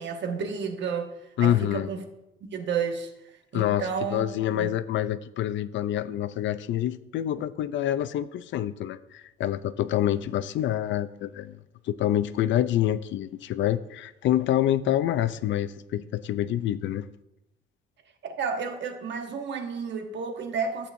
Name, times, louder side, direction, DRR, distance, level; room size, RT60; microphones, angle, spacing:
voice 1, 0.0-2.0 2.4-4.2 4.5-4.8 18.2-20.9, right 6 dB, 65° right, 1.1 m, -32 dB
voice 2, 1.4-1.9 3.5-11.6 11.9-17.1, left 12 dB, 70° left, 0.5 m, -27 dB
11.0 x 8.5 x 2.6 m
cardioid pair, 90°, 20 cm